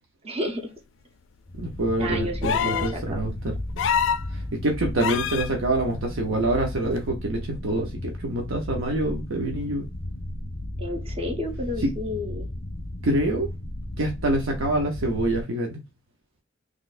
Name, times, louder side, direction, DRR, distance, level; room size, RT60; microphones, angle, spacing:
voice 1, 0.2-0.7 2.0-3.2 10.8-12.5, left 1 dB, 30° right, 0.9 m, -31 dB
sound 1, 1.5-15.4, left 1 dB, 25° left, 0.6 m, -34 dB
voice 2, 1.6-3.6 4.3-9.9 11.8-11.9 13.0-13.5 14.0-15.8, right 1 dB, 85° right, 0.7 m, -26 dB
sound 2, 2.4-3.0 3.8-4.3 5.0-5.5 7.0-7.1, left 8 dB, 65° left, 0.3 m, -25 dB
4.1 x 3.1 x 2.5 m
head